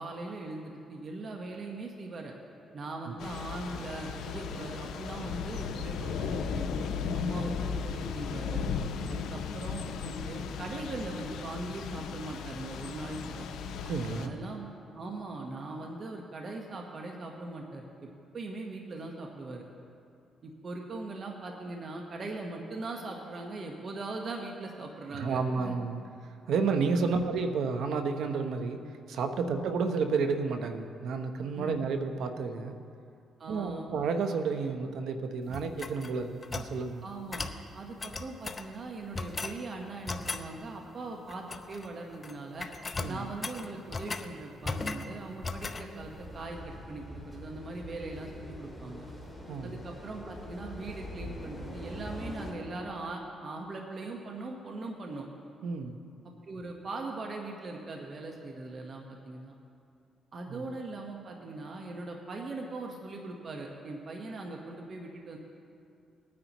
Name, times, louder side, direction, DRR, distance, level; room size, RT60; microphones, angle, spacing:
voice 1, 0.0-2.3 2.7-6.7 7.1-8.7 9.1-13.5 14.2-14.7 14.9-17.9 18.3-19.7 20.4-25.7 29.4-29.5 31.5-31.8 33.4-33.9 37.0-42.7 43.1-49.1 49.6-55.3 56.4-59.5 60.3-65.4, right 2 dB, 50° right, 1 dB, 1.2 m, -40 dB
Thunder / Rain, 3.2-14.3, left 6 dB, 80° left, 0.7 m, -36 dB
voice 2, 13.9-14.4 25.1-28.8 29.1-32.7 33.5-37.0 43.0-43.3 49.5-49.8 55.6-56.0 60.5-60.6, right 4 dB, 75° right, 6 dB, 0.9 m, -31 dB
sound 1, 35.5-36.7 37.3-37.6 38.0-38.7 39.1-39.6 40.1-40.5 41.3-41.9 42.1-42.3 42.6-44.3 44.6-45.1 45.4-45.9, left 3 dB, 30° left, 0.7 m, -37 dB
sound 2, 45.9-52.5, left 1 dB, 10° left, 2.4 m, -44 dB
19.0 x 9.6 x 3.0 m, 2.5 s
cardioid pair, 90°, 0 cm